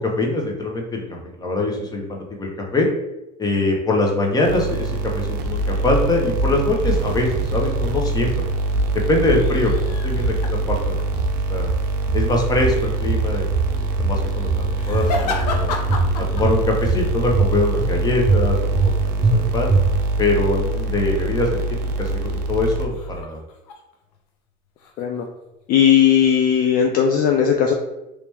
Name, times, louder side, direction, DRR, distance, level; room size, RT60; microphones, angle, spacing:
voice 1, 0.0-2.9 3.4-8.5 9.1-11.0 11.5-11.7 12.1-13.5 13.8-15.7 16.3-19.7 20.2-21.6 22.0-23.4, left 2 dB, 20° left, 0 dB, 0.9 m, -23 dB
sound 1, 4.4-23.2, right 3 dB, 85° right, 0.6 m, -24 dB
sound 2, 5.4-6.0 6.4-7.0 7.3-8.0 8.3-9.0 9.2-9.9 10.2-10.9 11.1-11.8 12.1-12.8 13.0-13.7 14.0-14.6 14.9-15.6 15.9-16.5 16.8-17.5 17.8-17.9 18.3-18.9 19.2-19.4 19.7-20.2, right 3 dB, 20° right, 0.6 m, -22 dB
sound 3, 8.9-11.1 14.7-17.0 17.4-17.6 22.9-24.2 24.5-25.7 26.2-26.6, left 3 dB, 80° left, 0.7 m, -32 dB
voice 2, 25.7-27.7, left 8 dB, 45° left, 3 dB, 0.4 m, -17 dB
3.1 x 2.9 x 3.4 m, 0.95 s
supercardioid pair, 105°, 20 cm